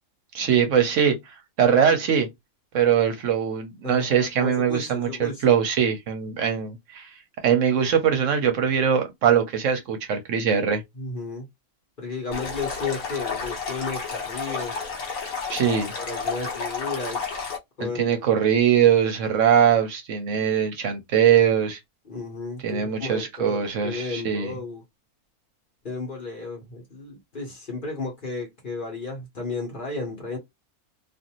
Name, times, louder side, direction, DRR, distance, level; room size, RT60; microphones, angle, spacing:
voice 1, 0.3-2.3 2.7-7.1 7.4-10.8 15.5-15.9 17.8-21.8 22.6-24.5, right 8 dB, 65° right, 0.9 m, -22 dB
voice 2, 3.8-5.6 11.0-11.5 12.0-14.8 16.0-17.3 17.8-18.2 22.0-24.8 25.8-30.4, left 3 dB, 40° left, 1.0 m, -33 dB
Stream, 12.3-17.6, left 5 dB, 65° left, 1.3 m, -31 dB
2.5 x 2.4 x 2.9 m
omnidirectional pair, 1.5 m